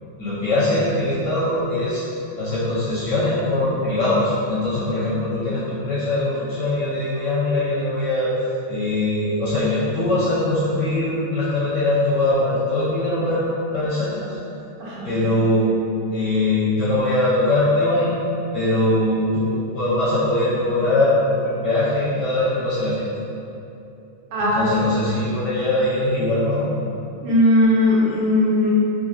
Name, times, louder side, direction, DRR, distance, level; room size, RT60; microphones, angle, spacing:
voice 1, 0.2-2.0 2.4-14.4 15.0-15.7 16.1-18.2 18.5-23.0 24.4-26.7, left 1 dB, 70° left, -9 dB, 1.0 m, -21 dB
voice 2, 14.8-15.1 24.3-24.6 27.2-28.7, left 1 dB, 75° right, -8 dB, 1.6 m, -18 dB
4.1 x 2.5 x 2.6 m, 2.8 s
omnidirectional pair, 2.3 m